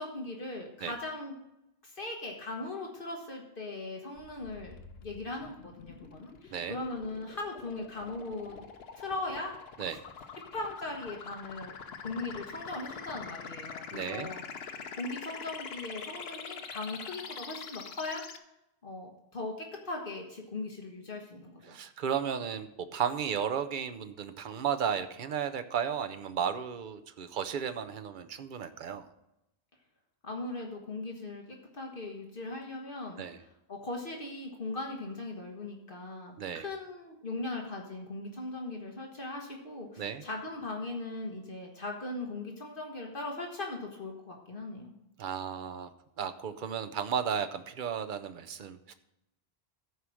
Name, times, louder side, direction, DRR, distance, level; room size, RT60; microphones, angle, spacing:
voice 1, 0.0-1.3 1.8-4.8 5.0-8.6 8.9-9.5 10.5-11.7 12.0-18.2 18.8-21.6 30.2-31.4 31.7-33.2 33.7-44.9, left 2 dB, 55° left, 1 dB, 1.5 m, -39 dB
sound 1, 4.2-18.4, left 6 dB, 75° left, 1.0 m, -45 dB
voice 2, 13.9-14.3 21.6-29.1 33.2-33.4 36.4-36.7 40.0-40.2 45.2-45.9 46.2-48.9, right 7 dB, 55° right, 9 dB, 0.8 m, -34 dB
14.0 x 4.8 x 6.2 m, 0.88 s
omnidirectional pair, 1.1 m